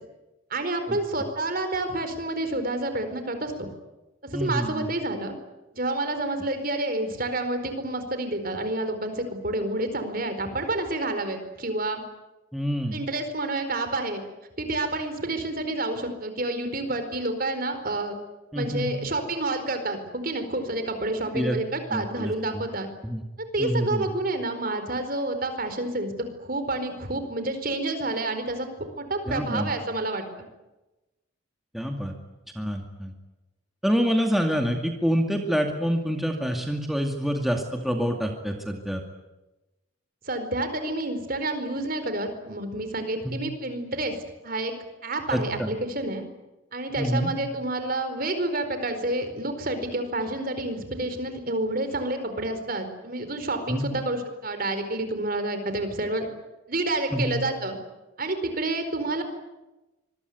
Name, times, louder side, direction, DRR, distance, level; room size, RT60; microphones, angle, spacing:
voice 1, 0.5-3.7 4.3-5.3 5.7-12.0 12.9-14.2 14.6-18.2 18.5-22.9 23.5-26.1 26.5-30.3 40.3-44.2 44.4-44.7 45.0-46.2 46.7-56.3 56.7-57.8 58.2-59.2, right 2 dB, 45° right, 8 dB, 4.5 m, -29 dB
voice 2, 4.3-4.9 12.5-13.0 18.5-18.9 21.3-21.6 21.9-22.6 23.0-23.2 23.6-24.1 29.3-29.7 31.7-32.1 32.6-33.1 33.8-39.0 43.2-43.4 45.3-45.7 47.0-47.3 53.7-53.9 57.1-57.3, equal, ahead, 2 dB, 2.4 m, -27 dB
25.5 x 22.5 x 9.5 m, 1.0 s
head